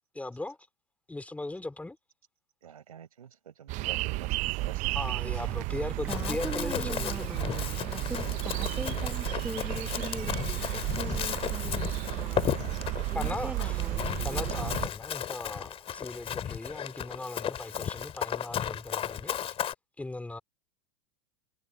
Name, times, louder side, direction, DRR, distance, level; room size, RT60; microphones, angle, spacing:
voice 1, 0.1-0.6 1.1-2.0 4.9-7.4 13.1-13.8 14.2-19.5 20.0-20.4, left 2 dB, 10° left, 3.2 m, -38 dB
voice 2, 2.6-5.0 5.4-5.5, right 9 dB, 80° right, 4.4 m, -47 dB
sound 1, 3.7-14.9, right 21 dB, 40° right, 0.6 m, -33 dB
voice 3, 6.0-12.6 13.1-14.8, right 2 dB, 10° right, 1.2 m, -41 dB
Run, 6.1-19.7, left 10 dB, 30° left, 3.4 m, -35 dB
hypercardioid pair, 90°, 18 cm